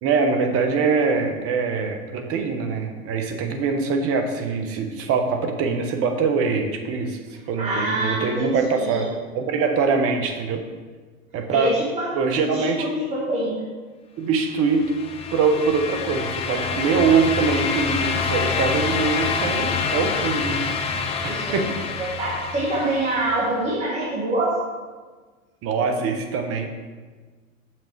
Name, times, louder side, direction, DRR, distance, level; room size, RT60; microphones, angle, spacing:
voice 1, 0.0-7.2 7.5-9.1 9.3-10.6 11.3-11.8 12.1-12.9 14.2-14.9 15.3-20.6 21.2-21.8 25.6-26.7, right 5 dB, 35° right, 5 dB, 1.0 m, -23 dB
voice 2, 7.6-9.0 11.5-13.6 21.3-21.7 22.0-24.6, right 1 dB, 15° right, -5 dB, 1.4 m, -26 dB
sound 1, 14.6-23.5, left 5 dB, 15° left, 0.4 m, -27 dB
6.9 x 6.0 x 4.5 m, 1.4 s
hypercardioid pair, 110°, 43 cm